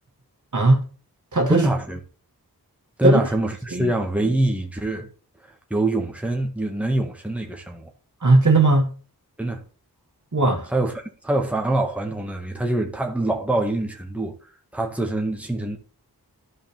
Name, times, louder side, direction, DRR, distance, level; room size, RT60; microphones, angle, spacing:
voice 1, 0.5-0.8 1.3-1.6 3.0-3.2 3.7-3.9 8.2-8.9 10.3-10.7, right 2 dB, 50° right, 2.1 m, -17 dB
voice 2, 1.5-2.0 3.0-5.1 5.4-7.9 9.4-9.6 10.7-14.4 14.7-15.8, right 2 dB, 5° right, 1.7 m, -24 dB
13.0 x 5.3 x 3.5 m
wide cardioid pair, 75°, 38 cm